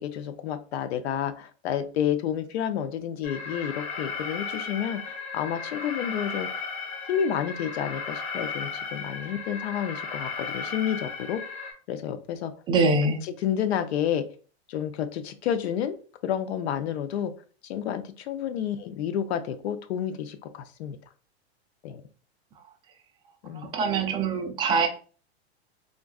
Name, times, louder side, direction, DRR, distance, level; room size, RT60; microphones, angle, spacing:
voice 1, 0.0-6.5 7.1-11.4 11.9-12.5 13.2-14.2 14.7-16.0 16.2-17.3 17.6-21.0 21.8-22.0 23.4-23.7, left 9 dB, 75° left, 10 dB, 0.6 m, -30 dB
Alarm, 3.2-11.7, left 5 dB, 45° left, 1.0 m, -35 dB
voice 2, 12.7-13.2 23.7-24.9, right 3 dB, 15° right, 4 dB, 0.3 m, -23 dB
3.8 x 2.2 x 2.3 m, 0.39 s
hypercardioid pair, 120°, 33 cm